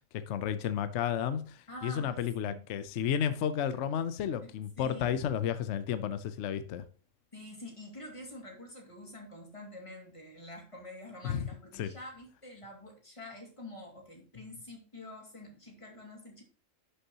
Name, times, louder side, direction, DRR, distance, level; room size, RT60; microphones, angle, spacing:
voice 1, 0.1-6.8 11.2-11.5 11.8-11.9, left 9 dB, 65° left, 0.9 m, -32 dB
voice 2, 1.7-2.2 2.4-2.6 4.4-5.2 7.3-16.4, left 1 dB, 25° left, 2.3 m, -47 dB
10.5 x 6.7 x 2.9 m
omnidirectional pair, 1.4 m